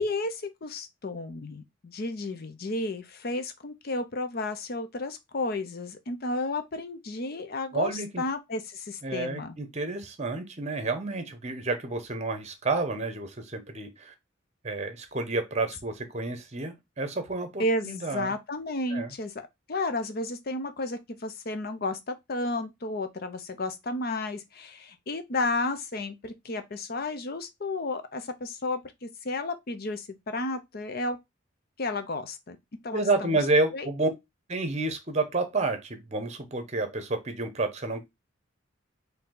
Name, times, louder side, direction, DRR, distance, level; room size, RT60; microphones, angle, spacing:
voice 1, 0.0-7.9 8.2-9.6 17.6-19.3 19.7-31.2 31.8-32.6 32.8-33.4 33.7-33.9, left 2 dB, 50° left, 0.6 m, -32 dB
voice 2, 7.7-8.2 9.0-14.1 14.6-18.3 18.9-19.1 32.9-34.1 34.5-38.0, right 3 dB, 35° right, 0.9 m, -30 dB
4.5 x 2.7 x 3.7 m
head